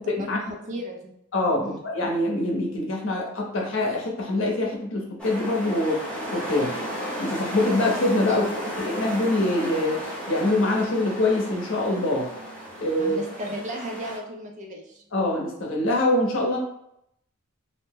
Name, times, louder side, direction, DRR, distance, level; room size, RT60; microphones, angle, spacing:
voice 1, 0.7-1.1 1.6-1.8 8.3-8.8 13.0-15.0, equal, 35° right, 0 dB, 0.4 m, -35 dB
voice 2, 1.3-6.0 6.3-6.7 7.2-8.5 8.8-12.3 12.8-13.2 15.1-16.6, left 1 dB, 65° left, -1 dB, 0.7 m, -24 dB
sound 1, 5.2-14.2, equal, 5° left, 0.7 m, -34 dB
2.6 x 2.0 x 3.5 m, 0.76 s
head